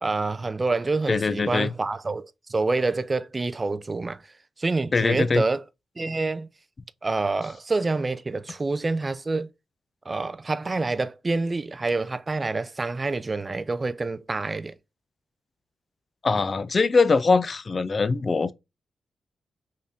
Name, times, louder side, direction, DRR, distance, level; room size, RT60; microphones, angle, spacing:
voice 1, 0.0-4.2 4.6-5.6 6.0-6.5 7.0-9.5 10.1-14.8, right 3 dB, 30° right, 0.3 m, -27 dB
voice 2, 1.1-1.7 4.9-5.4 16.2-18.5, left 4 dB, 45° left, 0.3 m, -22 dB
3.6 x 2.6 x 3.4 m
cardioid pair, 65°, 0 cm